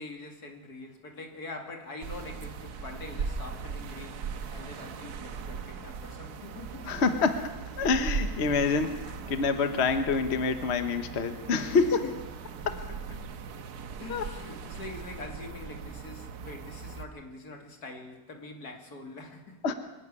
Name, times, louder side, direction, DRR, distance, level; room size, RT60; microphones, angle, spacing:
voice 1, 0.0-7.0 8.4-8.8 11.6-12.1 12.9-13.3 13.6-13.7 14.0-19.6, left 3 dB, 80° left, 3 dB, 3.0 m, -44 dB
sound 1, 2.0-17.1, right 5 dB, 85° right, 1.6 m, -39 dB
voice 2, 6.9-7.5 7.8-12.0 12.6-12.8 14.1-14.2 19.6-19.7, left 4 dB, 45° left, 8 dB, 1.3 m, -27 dB
24.0 x 11.5 x 9.7 m, 1.2 s
omnidirectional pair, 1.6 m